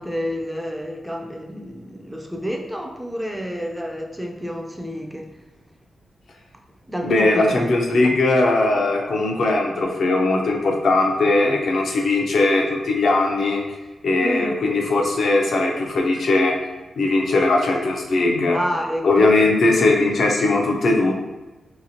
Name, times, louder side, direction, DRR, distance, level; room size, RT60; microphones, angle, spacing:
voice 1, 0.0-5.3 6.9-7.5 8.0-8.1 14.2-14.5 18.5-19.5, equal, 5° right, 1 dB, 0.3 m, -29 dB
voice 2, 7.0-13.6 14.0-16.6 17.0-18.6 19.0-21.1, left 2 dB, 70° left, 0 dB, 0.5 m, -19 dB
2.9 x 2.8 x 2.7 m, 1.1 s
wide cardioid pair, 125°, 0 cm